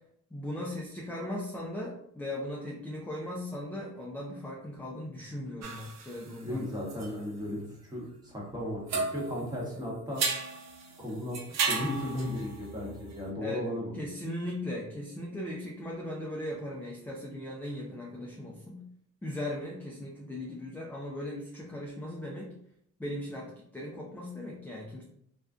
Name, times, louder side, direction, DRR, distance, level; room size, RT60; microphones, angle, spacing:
voice 1, 0.3-6.7 13.4-13.7 13.9-18.8 19.2-22.5 23.0-25.0, left 1 dB, 5° left, -4 dB, 0.4 m, -38 dB
sound 1, 5.6-8.6 8.9-13.2, right 4 dB, 60° right, 0.5 m, -35 dB
voice 2, 6.4-10.2 11.0-13.8, left 1 dB, 15° right, -4 dB, 1.0 m, -35 dB
2.5 x 2.3 x 2.3 m, 0.69 s
cardioid pair, 90°, 30 cm